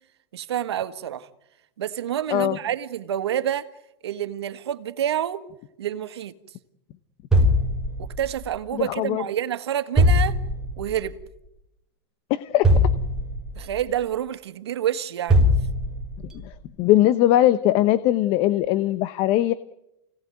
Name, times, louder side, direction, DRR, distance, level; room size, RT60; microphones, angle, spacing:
voice 1, 0.3-1.3 1.8-3.7 4.0-5.4 5.8-6.3 8.0-10.4 10.8-11.2 13.5-15.4, right 10 dB, 90° right, 1.7 m, -28 dB
sound 1, 7.3-8.4 10.0-10.9 12.6-13.7 15.3-16.3, left 1 dB, 5° right, 4.4 m, -20 dB
voice 2, 8.7-9.2 12.3-12.7 16.4-16.5 16.8-19.5, left 14 dB, 45° left, 1.0 m, -20 dB
29.0 x 18.0 x 9.3 m
supercardioid pair, 135°, 13 cm